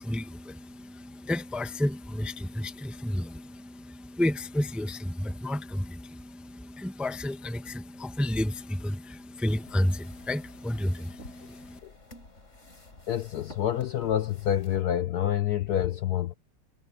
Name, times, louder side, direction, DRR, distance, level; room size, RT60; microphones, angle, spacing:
voice 1, 0.0-11.8, left 1 dB, ahead, 0.4 m, -31 dB
sound 1, 9.5-14.8, left 2 dB, 35° left, 4.3 m, -51 dB
voice 2, 13.1-16.3, left 11 dB, 70° left, 0.9 m, -27 dB
omnidirectional pair, 2.4 m